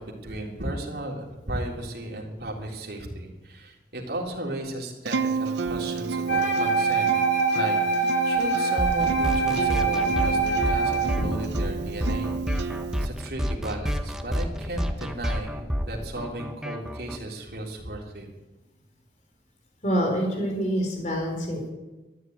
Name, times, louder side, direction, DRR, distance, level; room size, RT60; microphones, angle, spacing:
voice 1, 0.0-7.1 7.5-18.3, right 1 dB, 60° right, -1 dB, 3.6 m, -35 dB
Acoustic guitar, 5.1-13.0, right 5 dB, 80° right, 0.7 m, -31 dB
Wind instrument woodwind instrument, 6.3-11.2, right 4 dB, 90° left, 2.7 m, -24 dB
sound 1, 8.8-17.2, equal, 5° right, 1.0 m, -30 dB
voice 2, 19.8-21.7, equal, 40° left, 1 dB, 4.0 m, -26 dB
13.5 x 11.0 x 9.4 m, 1.1 s
head